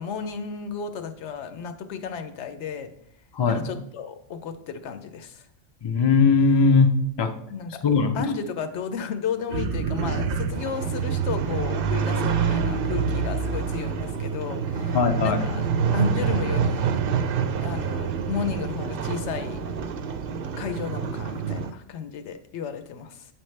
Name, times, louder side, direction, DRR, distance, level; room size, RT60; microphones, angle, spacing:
voice 1, 0.0-2.9 3.5-5.5 7.5-7.8 8.1-15.0 15.2-15.7 15.9-17.0 17.6-19.6 20.6-23.3, left 6 dB, 70° left, 8 dB, 0.9 m, -33 dB
voice 2, 3.3-3.7 5.8-7.3 7.8-8.2 14.9-15.5, left 4 dB, 40° left, 6 dB, 0.3 m, -20 dB
sound 1, 9.5-21.7, right 6 dB, 60° right, 0.6 m, -26 dB
8.3 x 4.5 x 3.2 m, 0.72 s
omnidirectional pair, 1.2 m